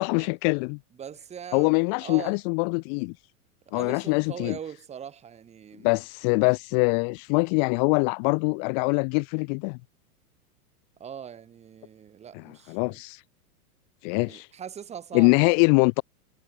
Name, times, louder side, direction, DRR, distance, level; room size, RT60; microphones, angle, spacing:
voice 1, 0.0-0.8 1.5-3.1 3.7-4.6 5.8-9.8 12.3-13.2 14.0-14.5 15.1-16.0, left 40 dB or more, 30° left, 1.1 m, -23 dB
voice 2, 0.9-2.4 3.7-6.0 11.0-13.0 14.1-15.6, right 8 dB, 15° right, 3.1 m, -41 dB
supercardioid pair, 165°, 45 cm